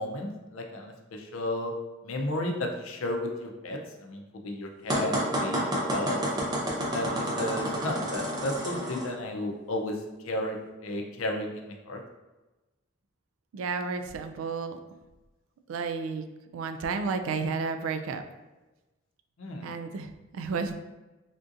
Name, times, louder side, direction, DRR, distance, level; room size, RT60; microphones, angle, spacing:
voice 1, 0.0-1.7 2.0-6.2 6.9-10.0 10.3-12.0 19.4-19.7, left 1 dB, 75° left, 2 dB, 0.5 m, -33 dB
sound 1, 4.9-9.1, equal, 20° right, 0.6 m, -29 dB
voice 2, 13.5-14.8 15.7-16.2 16.5-18.2 19.6-20.7, right 4 dB, 75° right, 8 dB, 0.3 m, -32 dB
3.5 x 2.6 x 2.5 m, 1.1 s
head